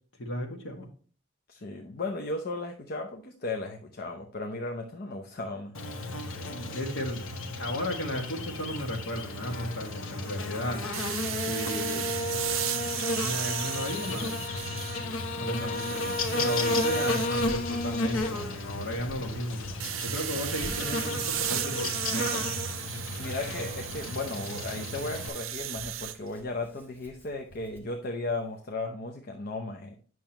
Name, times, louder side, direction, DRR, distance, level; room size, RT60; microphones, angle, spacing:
voice 1, 0.2-0.9 6.4-7.3 7.6-10.9 11.4-12.5 13.2-14.4 15.3-19.6 20.0-22.4, equal, 65° left, 2 dB, 1.7 m, -35 dB
voice 2, 1.5-5.7 15.7-15.8 23.2-30.0, left 2 dB, 50° left, 4 dB, 0.7 m, -35 dB
Buzz, 5.7-25.3, left 2 dB, 90° left, 1.0 m, -33 dB
sound 1, 10.9-15.2 15.6-17.3 19.8-26.2, right 13 dB, 85° right, 0.5 m, -35 dB
Hands, 14.3-27.8, right 1 dB, 10° left, 1.4 m, -52 dB
8.8 x 6.2 x 3.0 m, 0.42 s
head